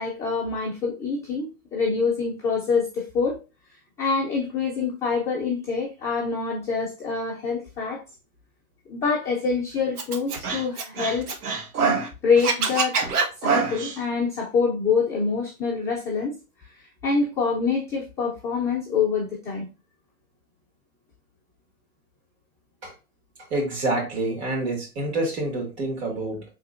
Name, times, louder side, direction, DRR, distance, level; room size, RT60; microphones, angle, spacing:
voice 1, 0.0-3.4 4.0-8.0 8.9-11.3 11.8-12.0 12.2-13.0 13.4-16.3 17.0-19.6, left 5 dB, 5° left, -9 dB, 0.8 m, -25 dB
Scratching (performance technique), 10.0-12.1 12.4-14.0, right 5 dB, 85° right, 1.1 m, -25 dB
voice 2, 23.5-26.4, right 2 dB, 45° right, 1 dB, 2.1 m, -27 dB
4.6 x 3.6 x 2.6 m, 0.30 s
hypercardioid pair, 145°, 44 cm